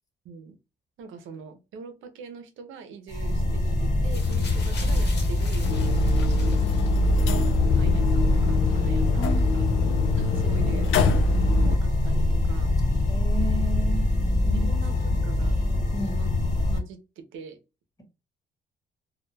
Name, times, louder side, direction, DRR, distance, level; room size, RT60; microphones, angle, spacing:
voice 1, 0.2-0.6 1.0-5.7 6.4-6.9 7.7-9.6 10.2-11.0 11.5-12.8 14.5-15.6 15.9-16.3 16.7-17.6, right 5 dB, 85° right, 0.6 m, -43 dB
sound 1, 3.1-16.8, left 2 dB, 40° left, 1.3 m, -24 dB
sound 2, 4.0-7.3 8.2-8.3, left 3 dB, 55° left, 1.0 m, -42 dB
sound 3, 5.6-11.8, left 4 dB, 85° left, 0.4 m, -26 dB
voice 2, 9.2-9.5 13.1-14.1 14.4-14.7 15.9-16.1, right 3 dB, 20° left, 1.0 m, -33 dB
2.3 x 2.2 x 3.1 m
cardioid pair, 90°, 20 cm